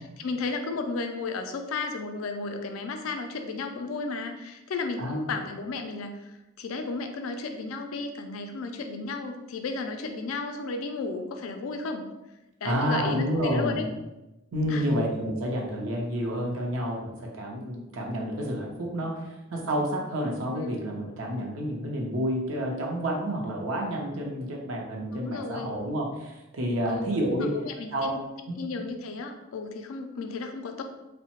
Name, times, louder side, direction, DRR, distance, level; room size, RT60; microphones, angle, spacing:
voice 1, 0.2-6.2 6.6-12.0 12.6-13.9 14.7-14.8 20.5-20.7 25.1-25.7 26.9-27.2 27.4-28.2 28.6-30.8, left 3 dB, 80° left, 6 dB, 0.4 m, -33 dB
voice 2, 5.0-5.3 12.6-13.8 14.5-27.5 27.9-28.2 28.5-28.6, equal, 75° right, -1 dB, 0.6 m, -29 dB
2.8 x 2.1 x 2.9 m, 0.98 s
head